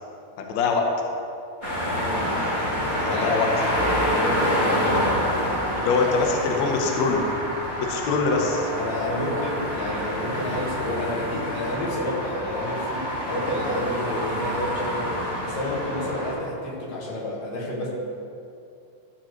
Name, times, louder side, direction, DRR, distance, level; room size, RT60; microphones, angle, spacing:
voice 1, 0.4-0.9 3.0-3.5 5.8-7.2 7.8-8.7, left 4 dB, 75° left, 1 dB, 1.6 m, -23 dB
sound 1, 1.6-16.3, equal, 25° left, 2.4 m, -27 dB
voice 2, 2.0-2.3 3.1-3.4 4.0-5.2 8.5-17.9, left 1 dB, 55° left, -4 dB, 2.5 m, -30 dB
13.5 x 7.4 x 3.1 m, 2.6 s
omnidirectional pair, 4.2 m